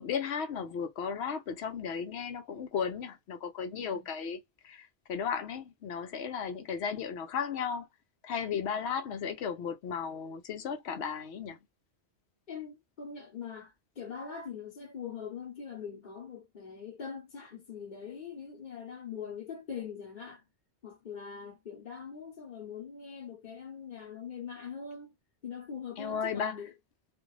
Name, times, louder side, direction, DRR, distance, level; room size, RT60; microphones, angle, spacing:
voice 1, 0.0-4.4 4.6-7.9 8.2-11.6 26.0-26.6, left 6 dB, 70° left, 0.9 m, -35 dB
voice 2, 3.8-4.1 7.0-7.1 12.5-20.4 20.8-25.1 25.4-26.7, left 6 dB, 45° left, 1.0 m, -42 dB
2.5 x 2.5 x 3.1 m
omnidirectional pair, 1.2 m